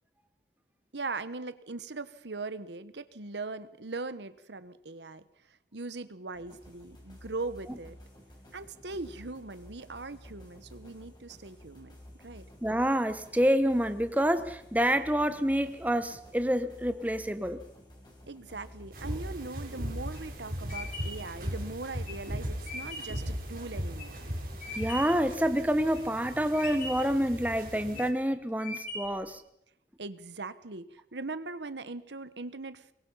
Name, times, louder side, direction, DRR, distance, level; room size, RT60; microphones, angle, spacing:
voice 1, 0.9-8.0 8.5-12.5 18.3-24.3 30.0-32.9, right 3 dB, 85° right, 14 dB, 1.2 m, -40 dB
sound 1, 6.3-25.5, left 1 dB, 25° left, 5.3 m, -52 dB
voice 2, 12.6-17.6 24.8-29.4, equal, 10° right, 10 dB, 1.0 m, -27 dB
sound 2, 18.9-28.1, equal, 50° right, 4.3 m, -38 dB
sound 3, 20.1-25.3 25.7-26.2 26.5-27.2 27.7-28.2 28.6-29.3, left 2 dB, 45° left, 6.0 m, -41 dB
24.0 x 21.5 x 5.6 m, 0.76 s
head